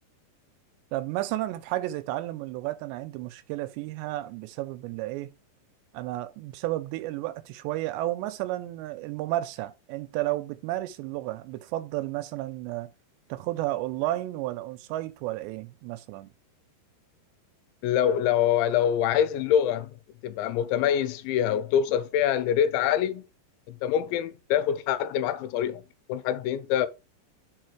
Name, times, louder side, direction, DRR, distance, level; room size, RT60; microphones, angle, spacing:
voice 1, 0.9-5.3 5.9-12.9 13.3-16.3, right 16 dB, 85° right, 2.6 m, -32 dB
voice 2, 17.8-19.9 20.2-23.3 23.7-25.8 26.1-26.9, left 9 dB, 85° left, 3.0 m, -25 dB
6.5 x 4.7 x 4.4 m
omnidirectional pair, 5.2 m